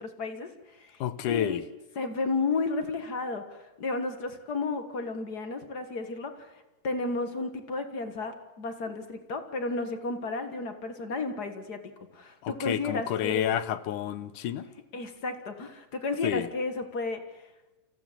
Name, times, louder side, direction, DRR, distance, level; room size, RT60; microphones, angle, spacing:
voice 1, 0.0-1.6 1.9-6.5 6.8-11.8 12.1-13.5 14.9-17.2, left 3 dB, 40° left, 1.5 m, -33 dB
voice 2, 1.0-1.6 12.4-14.7 16.2-16.5, left 10 dB, 75° left, 2.4 m, -29 dB
28.0 x 15.5 x 7.5 m
omnidirectional pair, 3.8 m